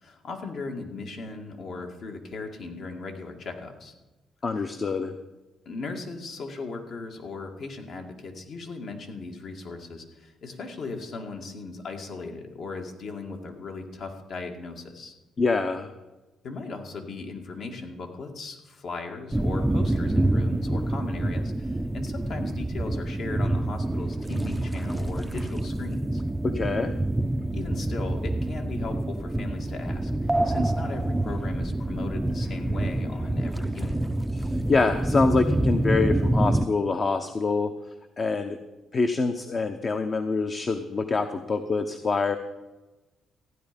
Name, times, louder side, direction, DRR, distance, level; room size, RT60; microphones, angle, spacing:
voice 1, 0.0-3.9 4.5-4.7 5.7-15.1 16.4-26.2 27.5-34.0, left 3 dB, 65° left, 3 dB, 2.1 m, -37 dB
voice 2, 4.4-5.1 15.4-15.9 26.4-26.9 34.7-37.7 38.2-38.6 38.9-42.4, left 4 dB, 40° left, 7 dB, 0.9 m, -25 dB
sound 1, 19.3-36.7, right 1 dB, 10° right, 0.5 m, -27 dB
15.0 x 9.9 x 5.3 m, 1.1 s
cardioid pair, 90°, 0 cm